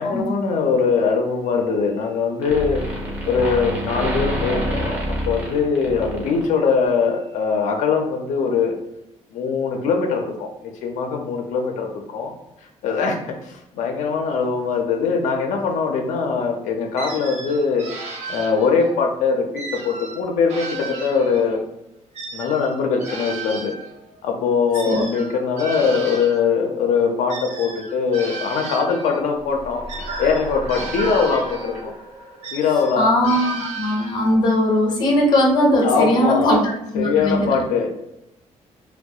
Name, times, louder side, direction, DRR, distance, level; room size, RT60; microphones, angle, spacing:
voice 1, 0.0-2.8 3.3-8.7 9.3-10.5 10.8-12.3 12.8-13.2 13.4-17.9 18.3-21.6 22.3-23.7 24.2-29.8 30.2-31.9 32.5-33.1 35.8-36.5 36.9-38.0, left 5 dB, 85° left, 2 dB, 0.4 m, -21 dB
sound 1, 1.5-2.2 2.4-6.9, equal, 15° right, 0.4 m, -27 dB
sound 2, 17.0-19.0 19.5-21.6 22.1-26.5 27.3-29.3 29.9-31.9 32.4-34.4, right 4 dB, 65° right, 0.5 m, -35 dB
sound 3, 29.4-33.6, right 1 dB, 90° right, 0.8 m, -34 dB
voice 2, 33.0-37.6, left 1 dB, 35° left, 0 dB, 0.5 m, -19 dB
2.3 x 2.1 x 2.6 m, 0.84 s
cardioid pair, 170°, 12 cm